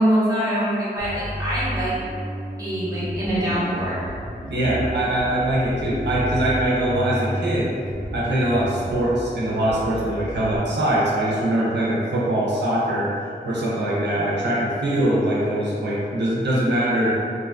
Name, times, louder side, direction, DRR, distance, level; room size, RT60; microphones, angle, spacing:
voice 1, 0.0-1.9 2.6-3.9, equal, 20° right, -11 dB, 1.0 m, -23 dB
Bass guitar, 1.0-10.6, equal, 5° left, 0.8 m, -32 dB
voice 2, 4.5-7.7 8.1-13.1 13.4-17.1, right 1 dB, 85° right, -6 dB, 0.5 m, -22 dB
2.5 x 2.3 x 2.3 m, 2.3 s
wide cardioid pair, 45°, 17 cm